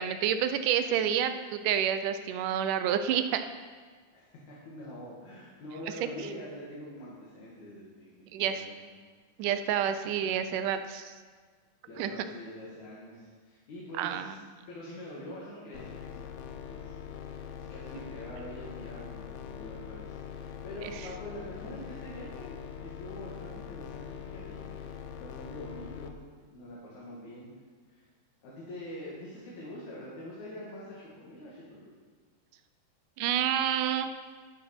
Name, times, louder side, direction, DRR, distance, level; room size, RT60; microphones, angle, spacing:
voice 1, 0.0-3.4 8.3-8.6 9.4-11.1 12.0-12.1 14.0-14.3 33.2-34.1, right 9 dB, 80° right, 9 dB, 2.0 m, -28 dB
voice 2, 4.1-8.7 11.9-14.4 14.7-26.2 26.5-27.5 27.9-28.1 28.4-31.9, left 1 dB, 60° left, -6 dB, 3.2 m, -45 dB
sound 1, 15.7-26.1, left 8 dB, 75° left, 1.7 m, -43 dB
13.5 x 7.8 x 5.9 m, 1.5 s
omnidirectional pair, 4.0 m